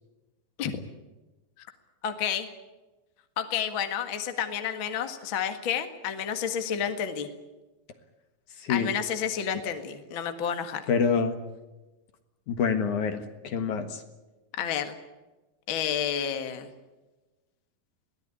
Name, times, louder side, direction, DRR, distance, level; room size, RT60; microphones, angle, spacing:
voice 1, 2.0-2.5 3.4-7.3 8.7-10.8 14.6-15.0 15.7-16.7, left 8 dB, 45° left, 7 dB, 2.0 m, -30 dB
voice 2, 8.6-8.9 10.9-11.4 12.5-14.0, left 6 dB, 60° left, 8 dB, 2.8 m, -26 dB
22.5 x 17.5 x 9.9 m, 1.1 s
omnidirectional pair, 4.2 m